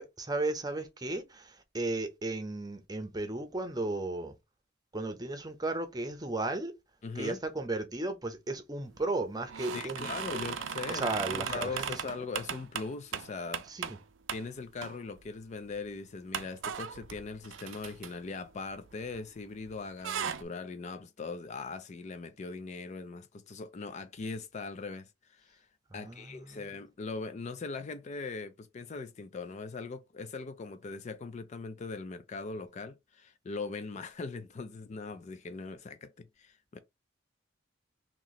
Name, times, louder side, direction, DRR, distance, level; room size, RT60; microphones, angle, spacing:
voice 1, 0.0-4.3 4.9-6.7 7.2-10.5 10.9-11.8 13.7-14.0 26.0-26.6, right 2 dB, 20° right, 0.7 m, -35 dB
voice 2, 7.0-7.4 9.7-13.7 14.3-25.7 25.9-36.8, left 4 dB, 35° left, 0.3 m, -40 dB
sound 1, 9.5-14.0 14.3-14.5 14.8-15.3 15.6-15.7 16.3-19.4 19.7-20.4, right 7 dB, 70° right, 0.5 m, -37 dB
3.0 x 2.8 x 4.0 m
head